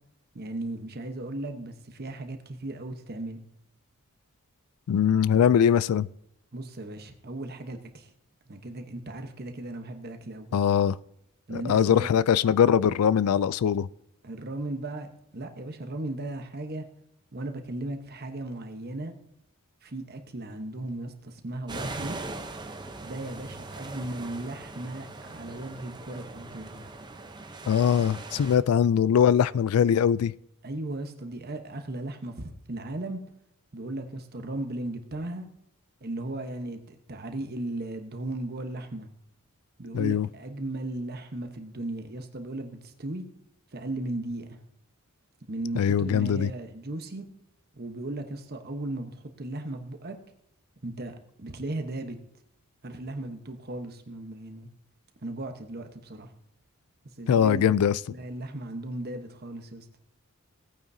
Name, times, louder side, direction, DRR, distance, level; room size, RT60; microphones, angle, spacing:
voice 1, 0.3-3.4 6.5-8.1 8.5-10.6 11.5-12.1 14.2-16.8 17.3-19.1 19.8-22.2 23.0-26.8 30.6-33.2 33.7-35.5 36.0-39.1 39.8-43.2 43.7-44.6 45.5-47.2 47.7-50.2 50.8-52.2 52.8-54.7 55.2-56.3 57.2-57.7 58.1-59.9, right 2 dB, 45° right, 6 dB, 1.0 m, -36 dB
voice 2, 4.9-6.1 10.5-11.0 11.5-13.9 27.7-30.3 39.9-40.3 45.7-46.5 57.3-58.0, left 8 dB, 75° left, 20 dB, 0.3 m, -22 dB
sound 1, 21.7-28.6, right 2 dB, 20° right, 0.7 m, -40 dB
18.0 x 8.9 x 2.7 m, 0.77 s
head